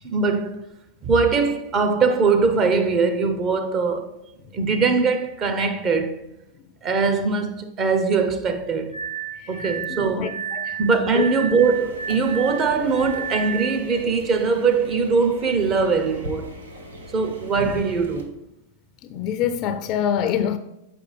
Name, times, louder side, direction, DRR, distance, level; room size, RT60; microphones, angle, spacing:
voice 1, 0.0-0.6 1.0-4.2 4.5-6.2 6.8-9.0 9.5-10.3 10.8-16.5 17.1-18.3, right 4 dB, 35° right, 0.8 m, -21 dB
Glass, 8.9-14.0, right 7 dB, 60° right, 1.5 m, -32 dB
voice 2, 9.4-10.8 11.1-11.3 19.0-20.6, left 9 dB, 45° left, 0.4 m, -26 dB
sound 1, 11.6-18.2, right 1 dB, 90° right, 1.0 m, -38 dB
6.9 x 4.8 x 3.4 m
hypercardioid pair, 105°, 0 cm